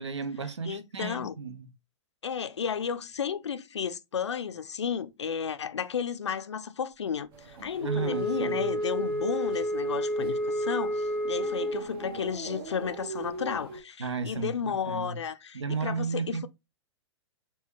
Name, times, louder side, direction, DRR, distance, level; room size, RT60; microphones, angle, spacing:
voice 1, 0.0-1.7 7.8-8.7 14.0-15.2 15.5-16.5, right 5 dB, 80° right, 0.7 m, -33 dB
voice 2, 0.7-1.3 2.2-16.5, left 7 dB, 80° left, 0.4 m, -33 dB
sound 1, 7.3-13.8, right 3 dB, 55° right, 1.0 m, -42 dB
Wind instrument woodwind instrument, 7.8-12.0, equal, 10° left, 0.7 m, -30 dB
4.5 x 2.7 x 3.0 m
figure-of-eight pair, 105°, 15 cm